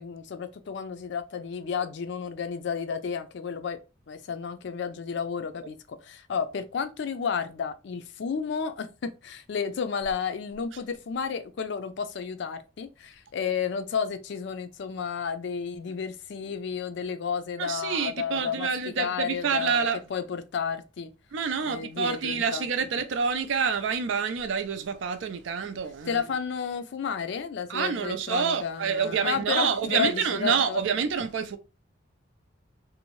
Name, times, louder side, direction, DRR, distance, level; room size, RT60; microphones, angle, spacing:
voice 1, 0.0-3.8 4.1-18.7 19.0-21.1 21.6-22.7 26.1-30.8, left 6 dB, 65° left, 0.4 m, -32 dB
voice 2, 17.6-20.0 21.3-26.2 27.7-31.6, right 6 dB, 75° right, 0.4 m, -27 dB
2.6 x 2.1 x 3.0 m
head